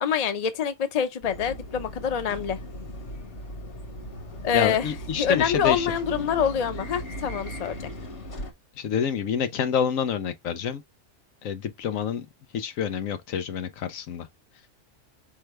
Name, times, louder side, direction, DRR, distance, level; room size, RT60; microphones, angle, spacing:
voice 1, 0.0-2.6 4.4-4.9 5.2-7.9, left 8 dB, 40° left, 0.6 m, -26 dB
sound 1, 1.2-8.5, left 1 dB, 60° left, 1.6 m, -38 dB
voice 2, 4.5-5.9 8.7-10.8 11.4-12.3 12.5-14.3, left 8 dB, 90° left, 1.2 m, -27 dB
4.5 x 3.6 x 3.1 m
omnidirectional pair, 1.4 m